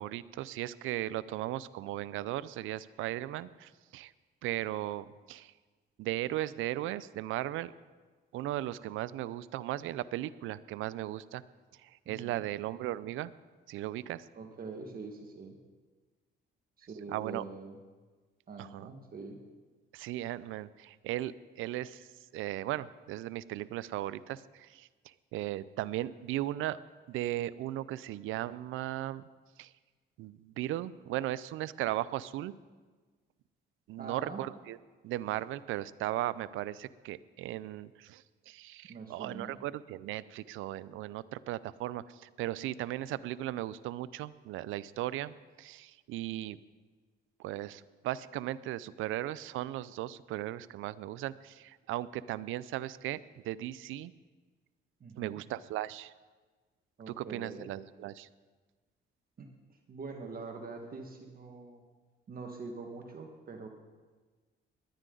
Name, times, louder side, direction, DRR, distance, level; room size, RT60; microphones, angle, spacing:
voice 1, 0.0-4.1 4.4-5.5 6.0-7.7 8.3-11.4 11.8-13.3 13.7-14.3 17.1-17.5 18.6-18.9 19.9-26.8 27.1-29.3 29.6-29.7 30.2-32.5 33.9-34.8 35.0-46.6 47.4-54.1 55.2-56.1 57.1-58.3, right 14 dB, 85° right, 18 dB, 0.5 m, -37 dB
voice 2, 14.3-15.6 16.8-17.8 18.5-19.4 34.0-34.4 38.9-39.6 55.0-55.4 57.0-57.6 59.4-61.8 62.3-63.7, right 4 dB, 45° right, 3 dB, 1.6 m, -44 dB
19.0 x 11.0 x 3.9 m, 1.4 s
cardioid pair, 90°, 20 cm